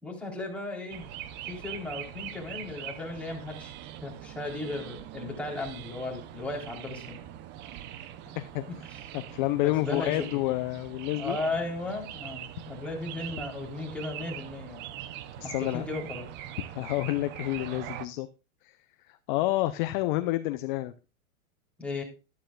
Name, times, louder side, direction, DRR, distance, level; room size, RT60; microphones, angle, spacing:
voice 1, 0.0-1.1 1.5-3.7 4.0-7.2 8.9-9.0 9.6-10.3 11.2-14.8 15.4-16.3 21.8-22.0, left 2 dB, 5° left, -2 dB, 3.7 m, -36 dB
sound 1, 0.9-18.1, right 11 dB, 25° right, 0.7 m, -42 dB
voice 2, 9.1-11.4 15.4-15.9 16.7-18.3 18.6-18.7 19.3-20.9, left 17 dB, 35° left, 12 dB, 0.6 m, -29 dB
13.5 x 11.5 x 2.4 m, 0.31 s
hypercardioid pair, 135°, 42 cm